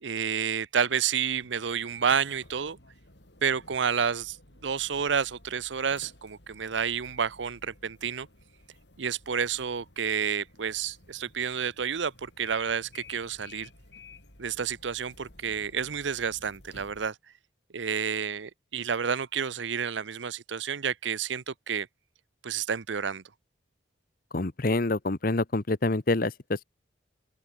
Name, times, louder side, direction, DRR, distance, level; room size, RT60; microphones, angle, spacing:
voice 1, 0.0-2.8 3.4-4.4 4.6-8.3 9.0-13.7 14.4-17.1 17.7-21.9 22.4-23.2, right 7 dB, 85° right, 0.7 m, -30 dB
sound 1, 1.2-17.1, left 2 dB, 70° left, 6.4 m, -54 dB
voice 2, 24.3-26.6, left 2 dB, 50° left, 1.0 m, -27 dB
open air
head